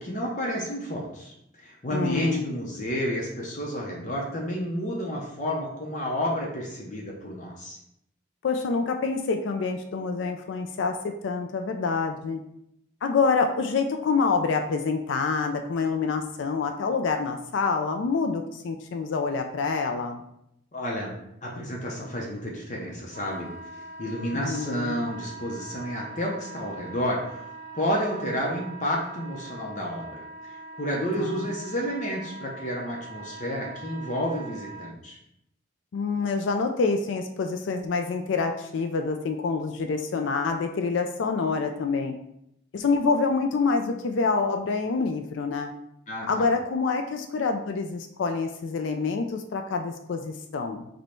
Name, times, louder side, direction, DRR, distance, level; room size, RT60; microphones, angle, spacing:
voice 1, 0.0-1.3 1.6-7.8 20.7-21.1 21.4-23.5 24.0-30.2 30.8-35.2 46.1-46.5, equal, 40° left, -2 dB, 0.7 m, -30 dB
voice 2, 1.9-2.5 8.4-12.4 13.0-20.2 24.3-25.0 31.2-31.4 35.9-42.1 42.7-45.7 46.3-50.9, left 4 dB, 70° left, 5 dB, 0.3 m, -27 dB
Wind instrument woodwind instrument, 23.1-34.9, right 3 dB, 55° right, 0.4 m, -42 dB
5.1 x 2.2 x 4.3 m, 0.79 s
head